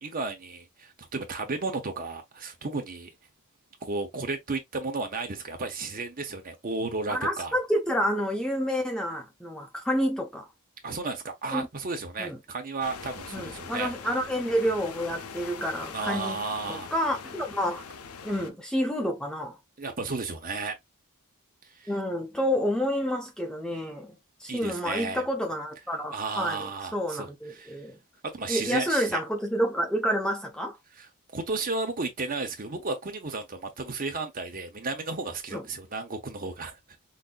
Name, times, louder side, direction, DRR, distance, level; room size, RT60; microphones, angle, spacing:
voice 1, 0.0-3.1 3.8-7.5 10.8-13.9 15.9-16.9 19.8-20.8 21.8-21.9 24.5-25.2 26.1-27.8 28.3-29.2 31.0-31.1 31.3-36.8, right 3 dB, 40° right, 1.0 m, -33 dB
voice 2, 7.1-10.5 11.5-11.7 12.2-12.4 13.3-16.4 16.7-17.8 18.2-19.6 21.9-28.0 28.5-30.8 35.5-35.6, equal, 5° left, 0.5 m, -29 dB
sound 1, 12.8-18.5, left 5 dB, 70° left, 0.6 m, -42 dB
5.1 x 2.7 x 2.2 m
head